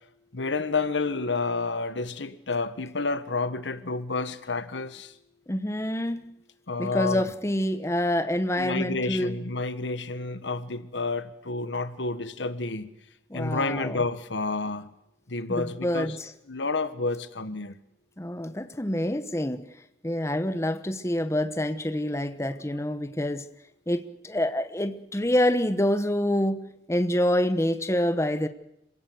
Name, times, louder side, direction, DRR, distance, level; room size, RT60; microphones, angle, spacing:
voice 1, 0.3-5.1 6.7-7.3 8.6-12.9 13.3-14.9 15.3-16.2 16.5-17.7, left 3 dB, 85° left, 1.4 m, -30 dB
voice 2, 5.5-6.3 6.8-9.4 13.3-14.0 15.6-16.3 18.2-19.6 20.0-23.5 23.9-28.5, left 1 dB, 15° left, 1.0 m, -27 dB
26.5 x 17.0 x 7.9 m
head